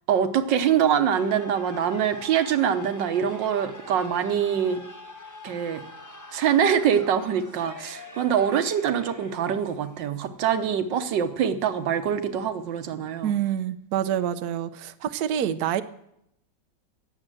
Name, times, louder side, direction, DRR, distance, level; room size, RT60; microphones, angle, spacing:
voice 1, 0.1-4.8 5.4-5.8 6.3-13.3, right 8 dB, 90° right, 10 dB, 1.6 m, -24 dB
sound 1, 1.2-12.1, left 1 dB, 15° left, 0.9 m, -45 dB
voice 2, 13.2-15.8, right 10 dB, 65° right, 10 dB, 1.2 m, -27 dB
18.0 x 7.5 x 7.7 m, 0.78 s
omnidirectional pair, 1.9 m